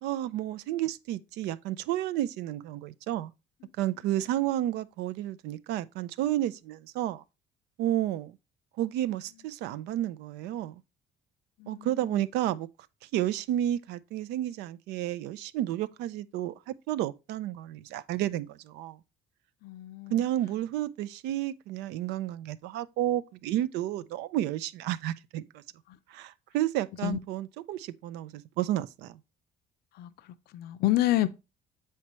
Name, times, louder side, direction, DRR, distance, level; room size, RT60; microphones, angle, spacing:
voice 1, 0.0-3.3 3.8-7.2 7.8-8.4 8.8-10.8 11.7-12.7 13.1-19.0 20.1-25.6 26.1-29.2, right 13 dB, 90° right, 0.5 m, -31 dB
voice 2, 19.6-20.2 25.9-26.0 27.0-27.2 29.9-31.3, left 15 dB, 70° left, 0.5 m, -29 dB
7.3 x 4.5 x 3.0 m
cardioid pair, 110°, 17 cm